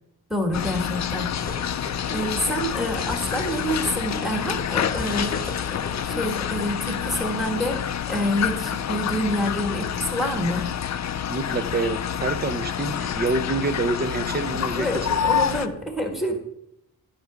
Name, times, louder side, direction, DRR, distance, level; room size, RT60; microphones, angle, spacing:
voice 1, 0.3-1.3 2.1-7.8 8.1-10.7 14.7-16.4, equal, ahead, 4 dB, 1.5 m, -27 dB
sound 1, 0.5-15.7, left 8 dB, 45° left, 0.5 m, -28 dB
sound 2, 1.3-6.4, left 3 dB, 20° left, 1.0 m, -37 dB
voice 2, 11.3-15.2, right 3 dB, 25° right, 12 dB, 0.6 m, -27 dB
11.5 x 5.8 x 5.1 m, 0.81 s
wide cardioid pair, 155°, 39 cm